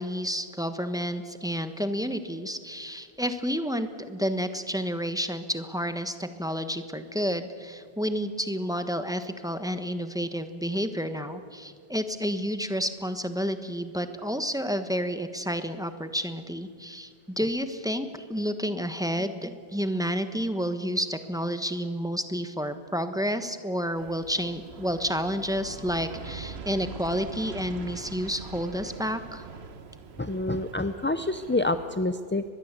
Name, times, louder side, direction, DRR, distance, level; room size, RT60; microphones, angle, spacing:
voice 1, 0.0-29.5, equal, 5° right, 9 dB, 1.2 m, -30 dB
Aircraft, 24.0-32.0, right 5 dB, 90° right, 1.3 m, -43 dB
voice 2, 30.2-32.4, left 2 dB, 15° left, 10 dB, 0.5 m, -27 dB
23.5 x 21.0 x 8.2 m, 2.1 s
omnidirectional pair, 1.1 m